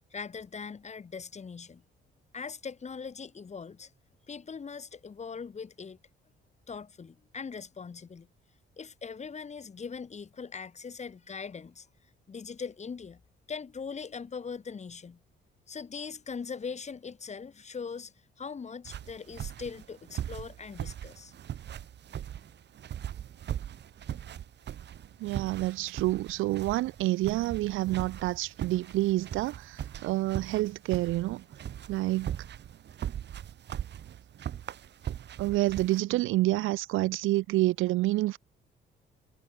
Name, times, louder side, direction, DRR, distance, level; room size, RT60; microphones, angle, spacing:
voice 1, 0.1-1.8 2.3-3.9 4.3-6.0 6.7-8.3 8.8-11.9 12.3-13.2 13.5-15.2 15.7-21.3, left 5 dB, 35° left, 1.8 m, -41 dB
sound 1, 18.9-36.0, right 10 dB, 60° right, 1.5 m, -40 dB
voice 2, 25.2-31.4 31.9-32.4 35.4-38.4, right 17 dB, 85° right, 0.6 m, -28 dB
cardioid pair, 90°, 20 cm